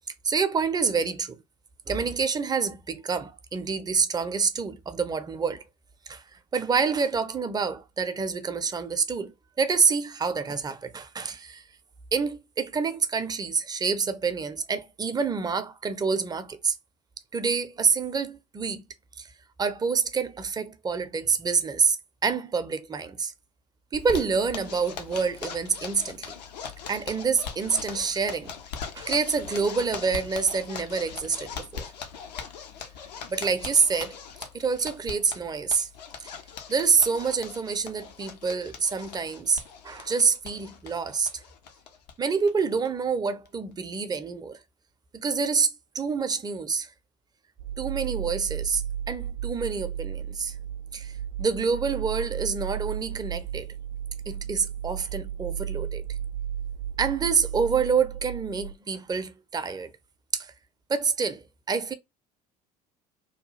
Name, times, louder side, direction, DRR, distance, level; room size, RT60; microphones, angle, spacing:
voice 1, 0.2-1.4 1.9-5.6 6.1-6.2 6.5-9.3 9.6-11.6 12.1-16.8 17.3-18.8 19.2-19.3 19.6-22.0 22.2-23.3 23.9-26.3 26.9-28.5 28.9-31.9 33.3-34.2 34.5-35.9 36.2-36.3 36.7-41.4 42.2-44.6 45.1-46.9 47.8-48.8 49.1-50.6 50.9-53.7 54.3-56.2 57.0-59.9 60.3-60.5 60.9-61.9, right 5 dB, 20° right, 0.5 m, -27 dB
Zipper (clothing), 23.9-42.1 42.4-42.5 42.8-42.9 43.3-43.7, left 6 dB, 75° left, 0.6 m, -41 dB
sound 1, 47.6-58.7, right 9 dB, 75° right, 0.4 m, -34 dB
2.8 x 2.3 x 3.0 m
figure-of-eight pair, 60°, 21 cm